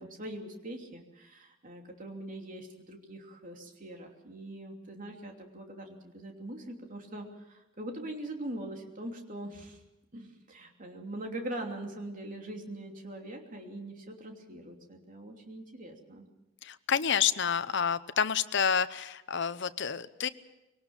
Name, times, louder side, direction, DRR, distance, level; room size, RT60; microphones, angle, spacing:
voice 1, 0.0-9.8 10.1-16.3, right 1 dB, 40° right, 2 dB, 3.0 m, -42 dB
voice 2, 16.6-20.3, left 7 dB, 65° left, 13 dB, 0.8 m, -29 dB
22.5 x 18.5 x 7.3 m, 0.97 s
head